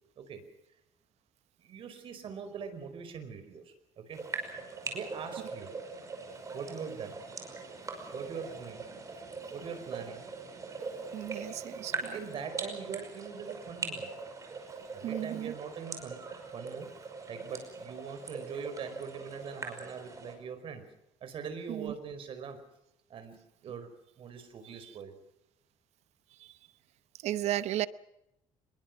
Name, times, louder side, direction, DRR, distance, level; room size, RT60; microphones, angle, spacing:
voice 1, 1.6-4.2 4.9-5.7 6.5-7.2 8.1-8.9 9.5-10.3 11.9-14.1 14.9-16.2 16.5-16.9 17.3-20.8 21.2-22.6 23.1-23.9 24.2-25.1, right 6 dB, 45° right, 5.1 m, -42 dB
sound 1, 4.1-20.4, right 4 dB, 25° right, 5.5 m, -41 dB
voice 2, 11.1-12.1 15.0-15.5 21.7-21.9 24.8-24.9 26.4-26.5 27.2-27.9, right 13 dB, 65° right, 0.8 m, -34 dB
25.5 x 22.0 x 6.2 m
cardioid pair, 150°, 12 cm